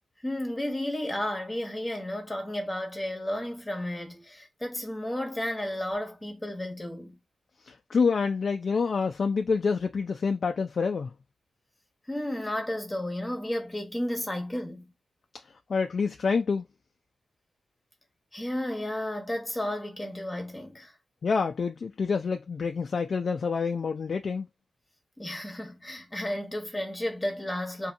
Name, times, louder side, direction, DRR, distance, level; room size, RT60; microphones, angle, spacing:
voice 1, 0.2-7.2 12.1-14.9 18.3-20.9 25.2-27.9, left 1 dB, 15° left, 0.9 m, -33 dB
voice 2, 7.7-11.1 15.7-16.6 21.2-24.5, left 5 dB, 55° left, 0.3 m, -27 dB
2.8 x 2.7 x 2.5 m
wide cardioid pair, 95°, 0 cm